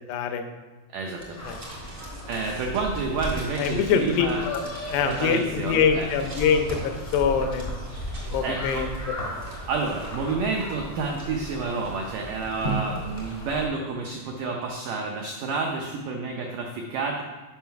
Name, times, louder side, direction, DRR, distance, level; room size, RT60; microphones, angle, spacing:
voice 1, 0.1-0.4 1.4-1.6 3.6-4.6 4.9-7.7 8.3-8.9, left 6 dB, 85° left, 6 dB, 2.8 m, -24 dB
voice 2, 0.9-1.5 2.3-4.4 5.0-6.1 8.4-9.0 9.7-17.2, right 4 dB, 90° right, 1 dB, 1.8 m, -29 dB
sound 1, 1.2-13.7, right 2 dB, 70° right, 0.7 m, -41 dB
sound 2, 1.4-13.7, equal, 55° left, 0.4 m, -37 dB
7.4 x 5.6 x 5.8 m, 1.2 s
omnidirectional pair, 4.8 m